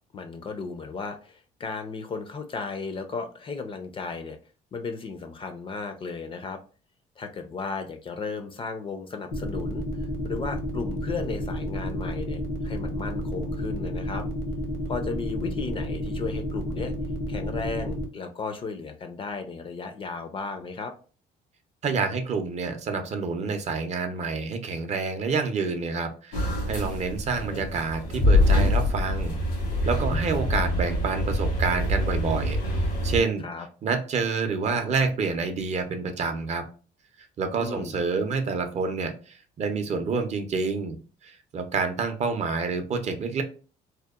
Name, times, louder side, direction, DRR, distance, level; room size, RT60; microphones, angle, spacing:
voice 1, 0.1-4.4 4.7-6.6 7.2-14.3 14.9-16.9 17.3-20.9 33.4-33.7 37.6-38.0, left 4 dB, 30° left, 7 dB, 0.4 m, -35 dB
sound 1, 9.3-18.0, left 1 dB, 75° left, 0.8 m, -30 dB
voice 2, 21.8-29.4 29.8-32.6 33.0-33.4 33.8-36.6 37.4-41.0 41.2-43.4, right 4 dB, 40° right, 6 dB, 0.5 m, -28 dB
sound 2, 26.3-33.2, left 1 dB, 90° left, 1.3 m, -25 dB
2.7 x 2.0 x 2.3 m, 0.37 s
cardioid pair, 110°, 17 cm